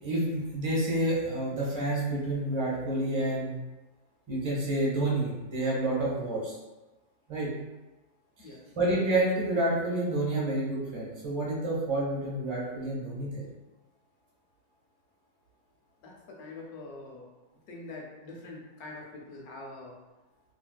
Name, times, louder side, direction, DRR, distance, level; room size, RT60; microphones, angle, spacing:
voice 1, 0.0-3.6 4.3-6.6 7.3-7.5 8.8-13.5, right 1 dB, 25° right, -5 dB, 0.6 m, -29 dB
voice 2, 16.0-17.3 17.7-20.0, left 2 dB, 70° left, -1 dB, 1.0 m, -44 dB
3.4 x 2.5 x 2.2 m, 1.1 s
omnidirectional pair, 1.7 m